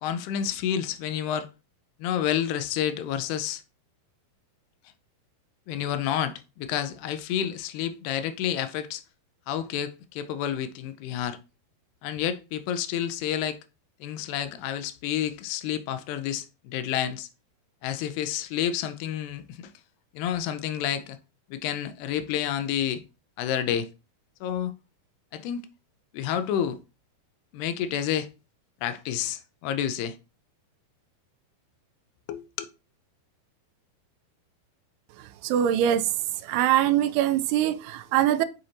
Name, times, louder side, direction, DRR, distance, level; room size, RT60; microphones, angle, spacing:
voice 1, 0.0-1.5 2.0-3.6 5.7-9.0 9.5-11.4 12.0-13.6 14.0-17.3 17.8-19.7 20.1-21.2 21.5-23.0 23.4-23.9 24.4-24.7 25.3-25.6 26.1-26.8 27.5-28.3 28.8-30.2 32.3-32.4, left 10 dB, 85° left, 2.7 m, -29 dB
voice 2, 35.4-36.0 36.5-38.5, right 11 dB, 90° right, 2.6 m, -23 dB
7.9 x 5.7 x 2.8 m
omnidirectional pair, 4.5 m